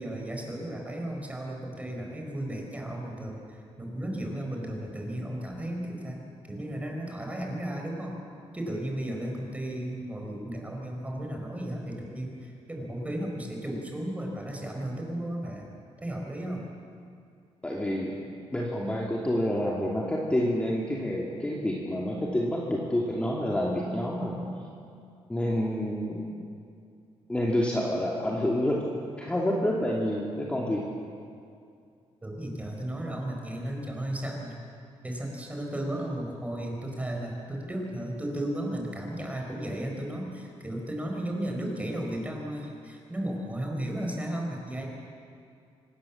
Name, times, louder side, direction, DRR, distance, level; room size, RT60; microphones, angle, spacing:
voice 1, 0.0-6.2 6.5-8.2 8.5-15.7 16.0-16.6 32.2-34.6 35.0-44.9, right 1 dB, 10° right, 1 dB, 4.9 m, -34 dB
voice 2, 17.6-18.2 18.5-24.4 25.3-26.2 27.3-28.8 29.2-30.8, left 1 dB, 10° left, -3 dB, 2.6 m, -28 dB
25.0 x 19.0 x 7.3 m, 2.4 s
cardioid pair, 120°, 11 cm